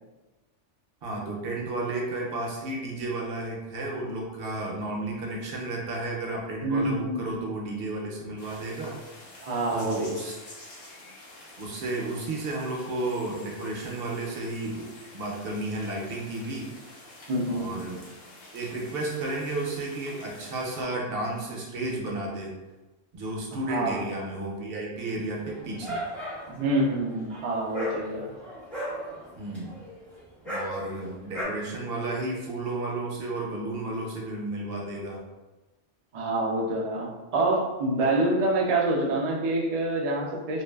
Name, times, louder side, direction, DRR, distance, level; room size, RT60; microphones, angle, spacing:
voice 1, 1.0-9.0 9.7-10.4 11.6-14.9 15.1-16.7 17.5-18.1 18.5-22.6 23.1-26.0 29.4-29.7 30.4-35.2, right 2 dB, 60° right, -2 dB, 0.7 m, -32 dB
voice 2, 6.6-7.2 9.4-10.1 17.3-17.7 23.7-24.1 26.6-28.3 36.1-40.6, right 2 dB, 75° right, -3 dB, 0.3 m, -26 dB
sound 1, 8.4-20.8, left 2 dB, 60° left, 0.8 m, -48 dB
Dog, 25.4-31.4, equal, ahead, 0.5 m, -37 dB
2.5 x 2.3 x 2.2 m, 1.1 s
omnidirectional pair, 1.2 m